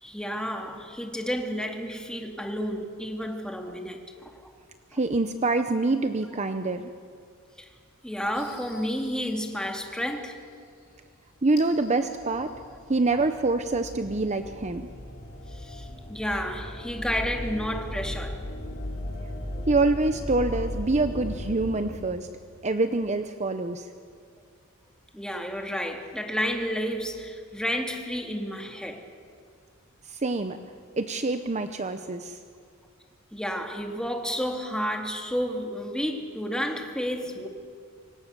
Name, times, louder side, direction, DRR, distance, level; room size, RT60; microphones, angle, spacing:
voice 1, 0.0-4.3 8.0-10.4 12.7-12.8 15.5-18.4 25.1-29.0 33.3-37.5, equal, 5° left, 2.5 m, -31 dB
voice 2, 4.9-6.9 11.4-12.5 12.9-14.9 19.7-22.3 22.6-23.9 30.1-30.6 31.0-32.4, right 3 dB, 35° right, 0.8 m, -26 dB
sound 1, 8.4-9.6 11.6-21.8, left 1 dB, 50° left, 4.4 m, -37 dB
25.5 x 24.5 x 6.9 m
head